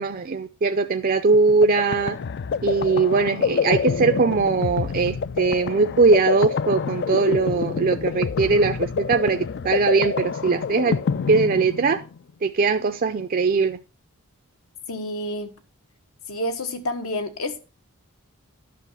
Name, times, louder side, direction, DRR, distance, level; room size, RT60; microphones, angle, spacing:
voice 1, 0.0-2.2 2.6-11.0 11.3-12.0 12.4-13.8, right 4 dB, 40° right, 0.5 m, -20 dB
sound 1, 1.3-12.2, left 6 dB, 50° left, 0.4 m, -27 dB
voice 2, 14.9-15.5 16.3-17.6, left 1 dB, 80° left, 1.4 m, -29 dB
10.5 x 6.0 x 5.5 m
head